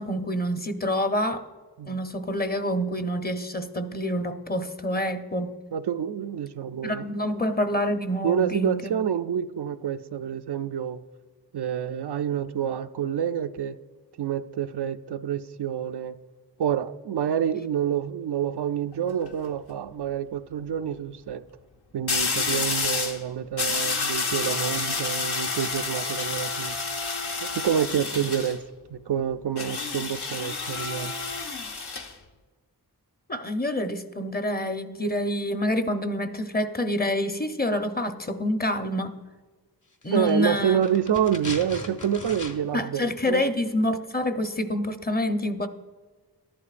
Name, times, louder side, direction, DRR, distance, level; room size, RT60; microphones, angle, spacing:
voice 1, 0.0-1.4 1.8-5.5 6.8-8.9 33.3-39.1 40.0-40.8 42.7-45.7, left 1 dB, 25° left, 0.8 m, -27 dB
voice 2, 5.7-7.1 8.2-11.0 11.5-13.8 14.2-16.1 16.6-21.4 21.9-26.8 27.4-28.6 28.9-31.1 40.1-43.5, right 9 dB, 80° right, 0.5 m, -28 dB
sound 1, 18.9-19.3 22.1-23.2 23.6-28.6 29.6-32.1, left 4 dB, 75° left, 1.1 m, -29 dB
sound 2, 40.0-42.9 43.1-43.2, left 2 dB, 50° left, 1.5 m, -39 dB
14.0 x 11.5 x 2.5 m
wide cardioid pair, 60°, 39 cm